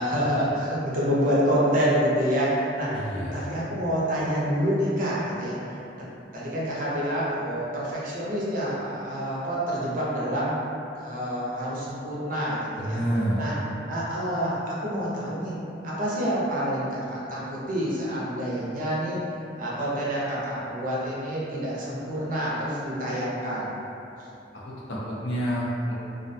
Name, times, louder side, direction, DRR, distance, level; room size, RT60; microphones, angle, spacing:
voice 1, 0.0-5.6 6.3-10.5 11.0-13.0 13.4-13.5 13.9-15.5 15.8-19.2 19.6-23.8, equal, 50° right, -7 dB, 0.5 m, -27 dB
voice 2, 2.9-3.6 12.8-13.5 24.5-25.9, right 1 dB, 75° left, -6 dB, 0.5 m, -29 dB
2.3 x 2.1 x 2.6 m, 2.8 s
head